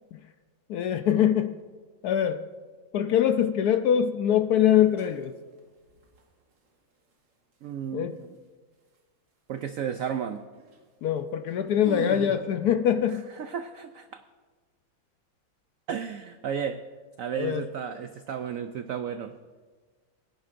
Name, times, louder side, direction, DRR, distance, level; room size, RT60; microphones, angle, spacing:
voice 1, 0.7-1.5 2.0-2.4 2.9-5.3 7.9-8.1 11.0-13.3 17.4-17.6, left 9 dB, 70° left, 8 dB, 0.9 m, -23 dB
sound 1, 3.9-4.1 4.7-5.2 5.6-6.2 9.6-9.7 9.9-10.3 10.6-10.8 11.2-11.3 11.5-12.3, right 2 dB, 70° right, 2.3 m, -38 dB
voice 2, 7.6-8.3 9.5-10.4 13.4-14.2 15.9-16.8 17.2-19.4, right 8 dB, 90° right, 9 dB, 0.7 m, -33 dB
22.5 x 10.5 x 2.6 m, 1.4 s
omnidirectional pair, 2.0 m